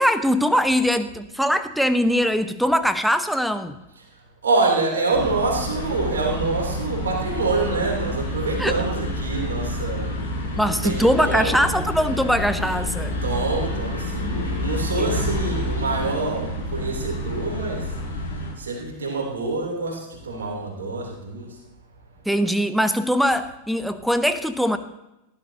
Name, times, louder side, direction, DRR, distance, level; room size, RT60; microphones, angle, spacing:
voice 1, 0.0-3.8 8.6-8.8 10.6-13.1 15.0-15.1 22.3-24.8, equal, ahead, 11 dB, 0.7 m, -21 dB
voice 2, 4.4-10.1 10.8-11.7 13.2-17.9 18.6-21.5, right 3 dB, 65° right, -1 dB, 3.1 m, -26 dB
sound 1, 5.1-18.5, left 1 dB, 70° left, 4.4 m, -28 dB
15.5 x 11.5 x 2.8 m, 0.91 s
figure-of-eight pair, 90°, 0 cm